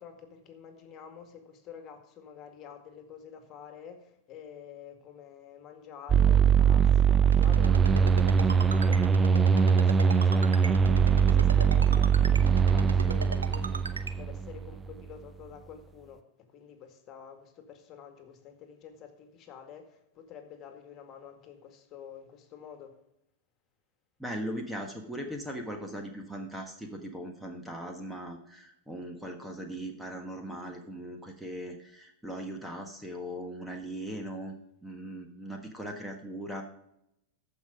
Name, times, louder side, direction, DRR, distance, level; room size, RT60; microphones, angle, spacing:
voice 1, 0.0-16.2 16.5-22.9, left 7 dB, 40° left, 2.0 m, -48 dB
sound 1, 6.1-14.9, right 6 dB, 20° right, 0.4 m, -22 dB
Ringtone, 7.3-14.1, right 5 dB, 90° right, 0.7 m, -37 dB
voice 2, 24.2-34.6 34.8-36.6, right 1 dB, 5° right, 1.5 m, -39 dB
14.0 x 5.6 x 5.0 m
hypercardioid pair, 100°, 0 cm